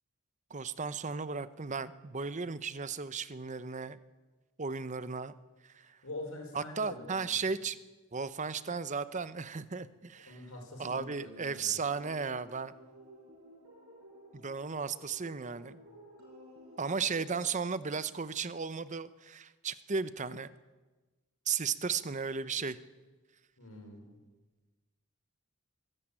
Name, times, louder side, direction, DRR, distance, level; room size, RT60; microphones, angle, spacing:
voice 1, 0.5-4.0 4.6-5.3 5.7-6.0 6.5-7.8 8.1-10.4 10.8-12.7 14.3-15.8 16.8-20.5 21.5-22.8, right 5 dB, 35° right, 15 dB, 0.7 m, -35 dB
voice 2, 6.0-7.5 10.3-11.8 23.6-24.1, left 2 dB, 75° left, 2 dB, 5.4 m, -45 dB
sound 1, 11.4-17.4, equal, 90° right, 6.4 m, -54 dB
23.0 x 13.5 x 8.8 m, 1.2 s
head